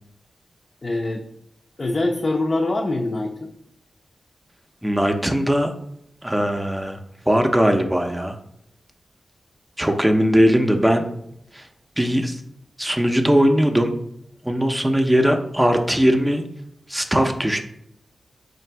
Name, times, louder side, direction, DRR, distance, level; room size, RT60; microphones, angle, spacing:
voice 1, 0.8-1.3 1.8-3.5, left 2 dB, 45° left, 0 dB, 0.5 m, -24 dB
voice 2, 4.8-5.7 6.2-7.0 7.3-8.4 9.8-11.0 11.5-11.7 12.0-12.4 12.8-13.9 14.4-16.4 16.9-17.7, equal, 10° right, 5 dB, 0.5 m, -19 dB
3.2 x 2.5 x 4.4 m, 0.74 s
cardioid pair, 40°, 0 cm